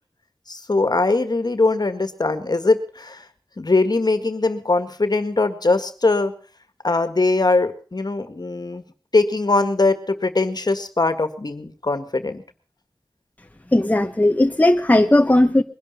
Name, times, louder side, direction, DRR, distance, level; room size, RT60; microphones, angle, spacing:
voice 1, 0.5-3.2 3.6-6.3 6.8-8.8 9.1-12.4, left 3 dB, 60° left, 1.7 m, -21 dB
voice 2, 13.7-15.6, left 1 dB, 20° left, 1.0 m, -16 dB
21.5 x 11.0 x 5.6 m
wide cardioid pair, 50°, 8 cm